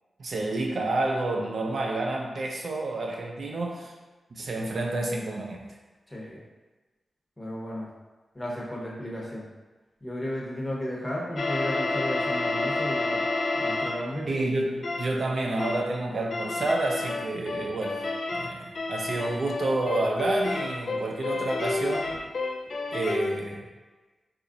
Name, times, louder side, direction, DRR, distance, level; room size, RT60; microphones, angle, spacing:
voice 1, 0.2-3.9 4.3-5.6 14.3-18.0 18.3-22.2 22.9-23.6, right 2 dB, 60° right, 0 dB, 0.4 m, -29 dB
voice 2, 6.1-6.4 7.4-7.9 8.3-9.5 10.0-13.3 13.5-14.3 19.1-19.2, left 1 dB, 20° left, -4 dB, 0.8 m, -34 dB
sound 1, 11.4-14.1 14.8-15.2 15.6-15.9 16.3-23.4, left 2 dB, 70° left, 0.3 m, -30 dB
2.9 x 2.4 x 3.7 m, 1.2 s
wide cardioid pair, 90°, 0 cm